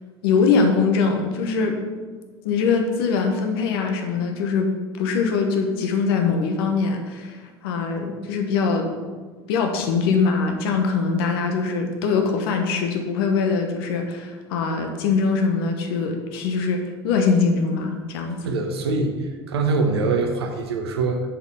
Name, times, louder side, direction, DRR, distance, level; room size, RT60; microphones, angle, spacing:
voice 1, 0.2-1.8 2.4-4.7 5.0-7.4 7.6-8.9 9.5-18.4, left 5 dB, 70° left, 4 dB, 1.2 m, -22 dB
voice 2, 18.4-19.1 19.5-21.2, right 3 dB, 80° right, 3 dB, 1.1 m, -23 dB
7.0 x 5.5 x 5.6 m, 1.4 s
hypercardioid pair, 75°, 13 cm